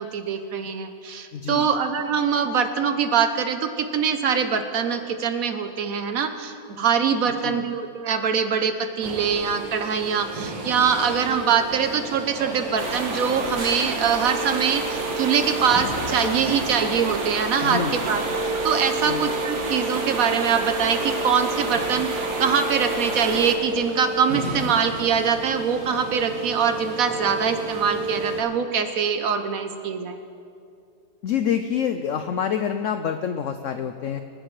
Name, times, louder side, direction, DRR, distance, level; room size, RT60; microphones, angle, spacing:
voice 1, 0.0-17.8 18.1-18.2 18.6-22.1 22.4-30.2, right 7 dB, 60° right, 8 dB, 1.0 m, -23 dB
voice 2, 1.3-1.7 7.4-7.6 17.6-18.0 19.0-19.2 31.2-34.2, left 8 dB, 85° left, 8 dB, 0.6 m, -27 dB
sound 1, 9.0-28.4, right 2 dB, 80° right, 2.3 m, -32 dB
sound 2, 12.8-23.6, right 2 dB, 45° right, 1.4 m, -30 dB
25.5 x 10.0 x 3.2 m, 2.5 s
omnidirectional pair, 1.9 m